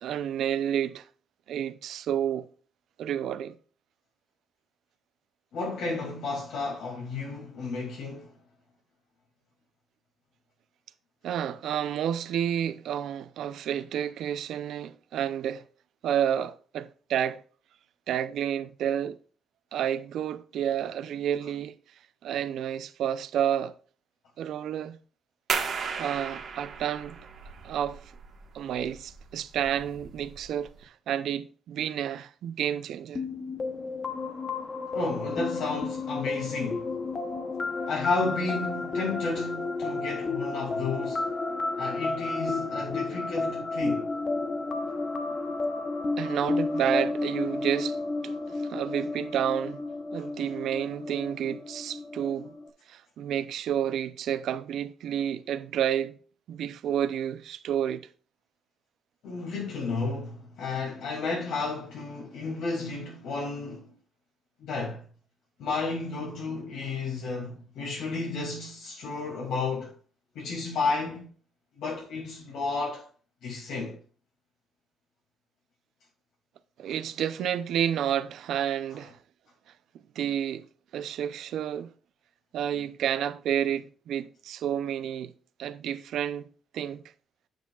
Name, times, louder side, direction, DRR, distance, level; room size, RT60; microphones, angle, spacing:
voice 1, 0.0-1.0 1.5-2.5 3.0-3.6 11.2-15.6 16.0-17.4 18.1-19.2 19.7-21.7 22.2-23.7 24.4-25.0 26.0-27.2 27.6-28.0 28.5-33.2 46.2-49.8 50.1-52.5 52.9-56.2 56.5-58.1 76.8-79.2 80.2-80.7 80.9-81.9 82.5-85.3 85.6-86.5 86.7-87.0, right 9 dB, 65° right, 0.5 m, -30 dB
voice 2, 5.5-8.3 34.9-36.9 37.9-41.3 41.8-44.1 59.2-63.9 64.6-65.0 65.6-69.9 70.3-71.2 71.8-73.1 73.4-74.0, left 3 dB, 75° left, 2.5 m, -32 dB
sound 1, 25.5-30.8, right 6 dB, 45° right, 1.5 m, -36 dB
sound 2, 33.1-52.7, left 3 dB, 25° left, 0.8 m, -32 dB
9.4 x 7.8 x 2.4 m
cardioid pair, 180°, 0 cm